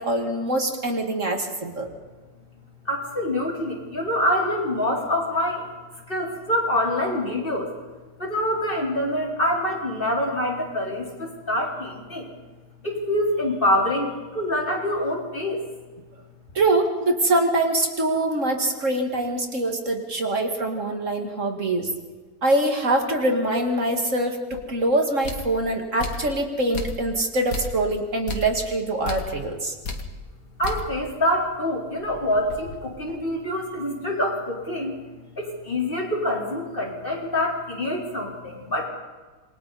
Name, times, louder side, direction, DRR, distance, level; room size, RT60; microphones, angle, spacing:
voice 1, 0.0-1.9 16.5-21.9 22.4-29.8, right 2 dB, 55° right, 3 dB, 2.5 m, -24 dB
voice 2, 2.9-5.7 6.1-7.7 8.2-12.3 12.8-15.6 30.6-34.9 35.4-38.9, left 1 dB, 35° left, -2 dB, 4.4 m, -25 dB
sound 1, 24.5-24.7 25.2-25.6 26.0-26.3 26.7-27.2 27.5-27.8 28.3-28.6 29.0-29.4 29.8-30.1 30.6-31.0 31.4-31.5 31.9-33.4, left 3 dB, 70° left, 2.2 m, -34 dB
28.0 x 23.0 x 4.2 m, 1.3 s
omnidirectional pair, 1.5 m